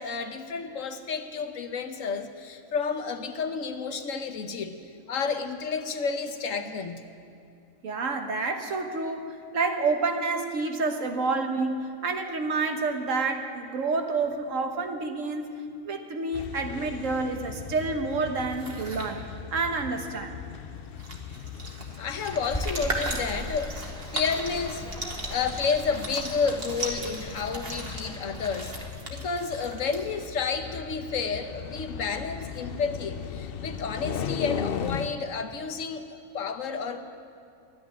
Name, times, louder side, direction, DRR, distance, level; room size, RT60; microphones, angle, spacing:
voice 1, 0.0-4.8 5.1-7.0 22.0-24.9 25.3-28.7 29.1-37.0, left 5 dB, 75° left, 7 dB, 1.3 m, -31 dB
voice 2, 7.8-15.5 15.8-20.4, right 3 dB, 75° right, 5 dB, 1.5 m, -29 dB
sound 1, 16.3-35.1, left 7 dB, 55° left, 0.7 m, -38 dB
Playing with Stones, 18.4-19.1 20.5-20.6 20.9-30.4, right 2 dB, 45° right, 1.9 m, -37 dB
sound 2, 22.3-28.9, equal, 5° left, 0.5 m, -39 dB
12.5 x 10.0 x 10.0 m, 2.5 s
omnidirectional pair, 1.4 m